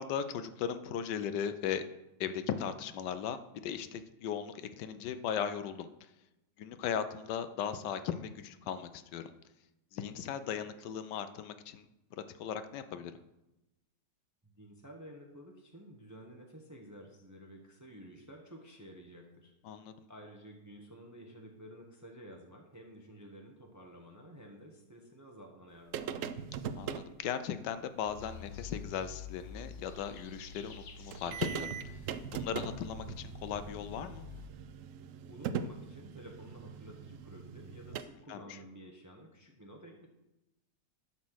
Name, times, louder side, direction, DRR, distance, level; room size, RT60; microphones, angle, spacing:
voice 1, 0.0-1.8 2.2-3.4 3.6-5.9 6.6-9.3 9.9-11.8 12.3-13.1 19.6-19.9 26.8-32.0 32.3-34.2 38.3-38.6, left 8 dB, 75° left, 11 dB, 1.2 m, -37 dB
voice 2, 14.4-19.5 20.1-26.4 35.3-40.1, equal, 15° right, 1 dB, 0.7 m, -52 dB
sound 1, 25.9-27.1 28.6-28.7 29.1-29.2 30.8-30.9 31.1-38.0, right 7 dB, 85° right, 0.7 m, -41 dB
sound 2, 28.1-34.5, left 6 dB, 50° left, 0.9 m, -48 dB
11.0 x 4.2 x 6.2 m, 0.94 s
omnidirectional pair, 1.9 m